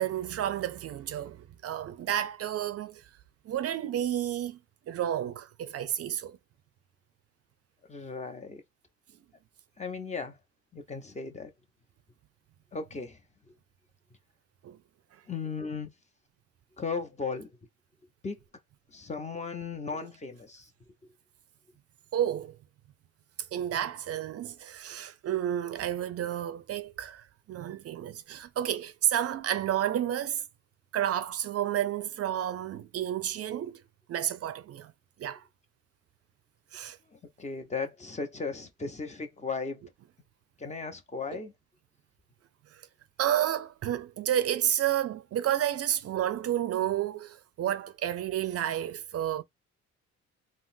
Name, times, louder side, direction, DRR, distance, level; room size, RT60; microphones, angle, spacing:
voice 1, 0.0-3.0 3.5-4.6 4.9-6.4 14.6-14.8 22.1-22.6 23.5-30.4 30.9-33.8 34.1-34.9 35.2-35.4 36.7-37.0 43.2-49.4, right 11 dB, 55° right, 0.4 m, -31 dB
voice 2, 7.9-8.6 9.8-10.4 10.7-11.5 12.7-13.2 15.3-15.9 16.8-17.5 18.2-18.4 18.9-20.7 21.0-21.1 37.1-39.8 40.6-41.5, left 4 dB, 25° left, 0.6 m, -36 dB
3.7 x 2.0 x 2.5 m
cardioid pair, 90°, 30 cm